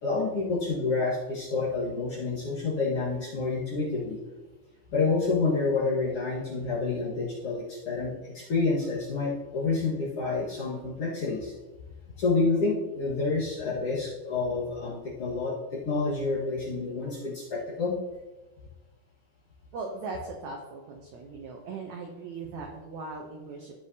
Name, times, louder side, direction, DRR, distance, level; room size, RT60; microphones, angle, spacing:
voice 1, 0.0-4.2 4.9-11.5 12.2-17.9, left 3 dB, 50° left, -7 dB, 1.9 m, -28 dB
voice 2, 19.7-23.7, right 4 dB, 80° right, 1 dB, 1.6 m, -39 dB
15.0 x 5.1 x 2.7 m, 1.2 s
omnidirectional pair, 4.2 m